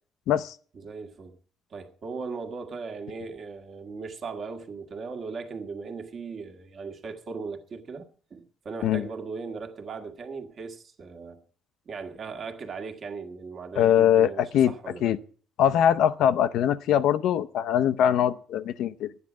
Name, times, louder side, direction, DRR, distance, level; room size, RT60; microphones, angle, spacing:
voice 1, 0.7-1.4 1.7-11.4 11.8-15.1, right 4 dB, 40° right, 1.5 m, -38 dB
voice 2, 13.8-14.7 15.0-15.2 15.6-19.1, left 10 dB, 75° left, 0.6 m, -22 dB
12.5 x 9.6 x 6.0 m
cardioid pair, 155°, 0 cm